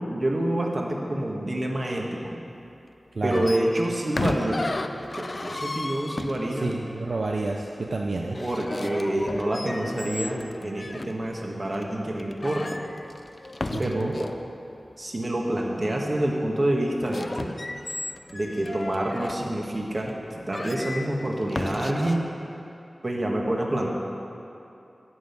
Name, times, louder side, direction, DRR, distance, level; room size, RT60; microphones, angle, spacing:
voice 1, 0.1-2.4 3.2-4.6 5.2-6.7 8.3-12.8 13.8-14.3 15.0-17.5 18.3-22.2 23.0-23.9, right 1 dB, 40° right, -1 dB, 1.5 m, -27 dB
sound 1, 3.3-6.7 8.2-11.1 11.7-11.8 12.2-14.4 16.9-19.4 20.1-20.2 20.5-22.2, left 2 dB, 45° left, 0.5 m, -34 dB
voice 2, 6.5-8.4 13.7-14.1, right 3 dB, 70° right, 0 dB, 0.6 m, -29 dB
11.0 x 5.5 x 8.2 m, 2.8 s
wide cardioid pair, 85°, 0 cm